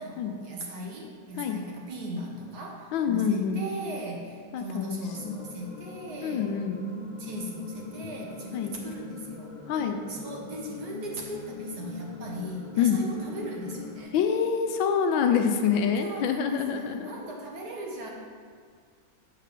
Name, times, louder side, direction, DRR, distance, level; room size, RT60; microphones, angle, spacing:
voice 1, 0.0-6.6 7.2-9.5 10.1-14.1 16.0-18.1, right 1 dB, 60° right, -1 dB, 1.4 m, -38 dB
voice 2, 2.9-3.6 4.5-5.4 6.2-6.8 8.5-8.7 9.7-10.0 12.8-13.0 14.1-17.1, left 7 dB, 80° left, 5 dB, 1.3 m, -26 dB
sound 1, 5.1-14.0, left 4 dB, 40° left, 0.4 m, -41 dB
7.5 x 3.8 x 6.6 m, 2.1 s
omnidirectional pair, 2.2 m